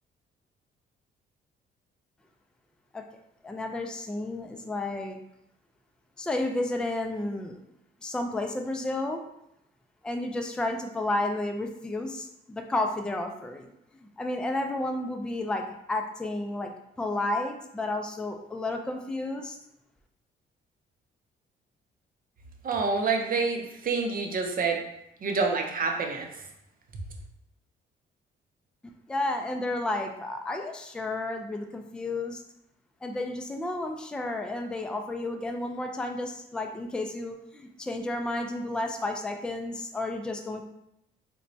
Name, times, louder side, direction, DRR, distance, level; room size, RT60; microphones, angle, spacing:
voice 1, 3.4-5.2 6.2-7.6 8.0-9.2 10.0-13.7 14.0-16.7 17.0-19.6 29.1-32.4 33.0-40.6, left 2 dB, 5° left, 4 dB, 0.3 m, -32 dB
voice 2, 22.6-24.8 25.2-26.4, right 4 dB, 45° right, 3 dB, 0.6 m, -27 dB
4.1 x 2.2 x 2.6 m, 0.80 s
cardioid pair, 90°, 20 cm